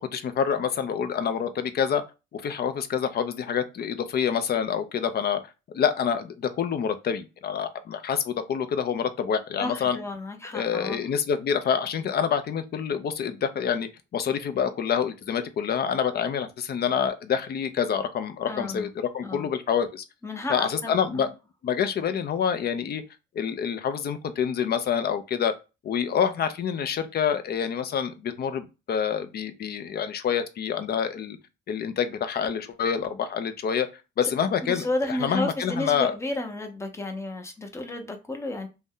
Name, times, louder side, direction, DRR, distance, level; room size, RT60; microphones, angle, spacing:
voice 1, 0.1-2.0 2.3-5.4 5.7-10.0 10.5-20.0 20.5-21.3 21.6-23.0 23.3-25.5 25.8-31.4 31.7-33.9 34.2-36.1, left 7 dB, 50° left, 0.5 m, -27 dB
voice 2, 9.6-11.0 18.5-18.9 19.2-19.5 20.2-21.3 34.2-34.3 34.6-38.7, left 2 dB, 15° left, 0.7 m, -32 dB
2.6 x 2.1 x 3.6 m
cardioid pair, 90°, 20 cm